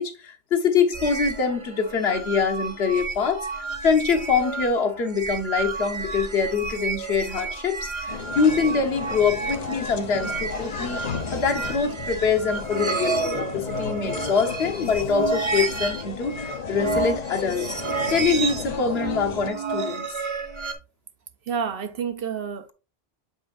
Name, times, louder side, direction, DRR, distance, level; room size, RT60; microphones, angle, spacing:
voice 1, 0.0-3.5 3.8-11.0 11.3-17.7 18.1-20.2, left 5 dB, 75° left, 1.2 m, -24 dB
sound 1, 0.9-20.7, right 3 dB, 30° right, 0.9 m, -31 dB
sound 2, 8.1-19.5, left 6 dB, 50° left, 0.6 m, -34 dB
voice 2, 21.5-22.7, right 6 dB, 65° right, 0.8 m, -29 dB
7.9 x 5.4 x 2.4 m
omnidirectional pair, 1.1 m